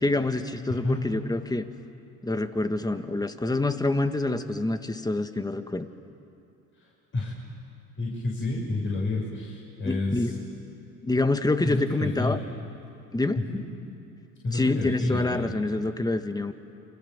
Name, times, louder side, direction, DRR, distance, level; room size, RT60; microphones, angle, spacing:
voice 1, 0.0-1.7 2.2-5.9 9.8-10.3 11.0-12.4 13.1-13.4 14.5-16.5, left 2 dB, 10° left, 8 dB, 1.6 m, -26 dB
voice 2, 0.7-1.0 7.1-7.3 8.0-10.3 11.6-12.3 13.5-13.6 14.4-15.4, left 2 dB, 35° left, -4 dB, 6.6 m, -29 dB
29.0 x 25.5 x 7.3 m, 2.7 s
supercardioid pair, 85°, 36 cm